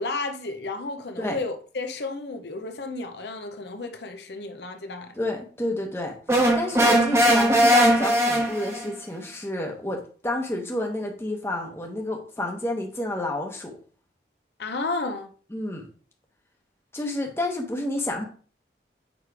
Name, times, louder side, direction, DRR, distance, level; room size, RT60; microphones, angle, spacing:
voice 1, 0.0-5.1 6.7-7.2 14.6-15.3, left 3 dB, 75° left, 0.7 m, -32 dB
voice 2, 5.2-6.2 6.5-13.8 15.5-15.9 16.9-18.2, left 1 dB, 15° left, 1.0 m, -30 dB
sound 1, 6.3-8.9, equal, 15° right, 1.0 m, -19 dB
7.0 x 3.2 x 4.7 m
head